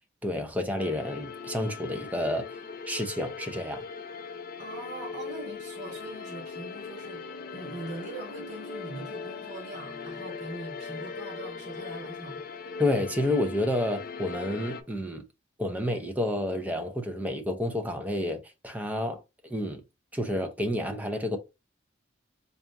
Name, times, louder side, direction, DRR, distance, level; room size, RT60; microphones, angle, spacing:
voice 1, 0.2-2.4 2.9-3.8 12.8-15.2 15.6-19.8 20.1-21.4, left 1 dB, 10° right, 0.6 m, -30 dB
sound 1, 0.8-14.8, left 5 dB, 45° left, 0.5 m, -40 dB
voice 2, 4.6-7.2 7.5-12.4, right 2 dB, 40° right, 2.2 m, -41 dB
4.0 x 2.4 x 3.5 m
head